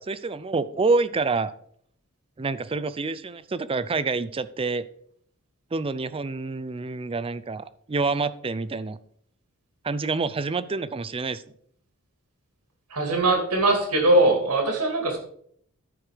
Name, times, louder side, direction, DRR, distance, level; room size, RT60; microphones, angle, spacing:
voice 1, 0.1-1.5 2.4-4.8 5.7-9.0 9.8-11.4, right 3 dB, 25° right, 15 dB, 0.5 m, -27 dB
voice 2, 12.9-15.2, right 2 dB, 90° right, 3 dB, 2.7 m, -21 dB
13.0 x 4.7 x 5.0 m, 0.64 s
head